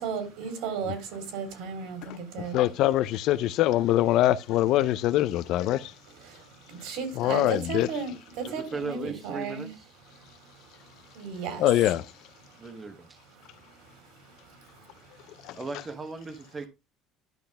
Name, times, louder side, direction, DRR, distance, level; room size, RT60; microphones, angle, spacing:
voice 1, 0.0-2.6 6.8-9.7 11.2-11.6, right 6 dB, 70° right, 4.1 m, -34 dB
voice 2, 2.5-5.9 7.2-7.9 11.6-12.0, left 14 dB, 60° left, 0.6 m, -23 dB
voice 3, 8.4-9.9 12.6-13.2 15.5-16.7, right 3 dB, 20° right, 1.2 m, -37 dB
12.0 x 5.7 x 3.6 m
cardioid pair, 150°, 0 cm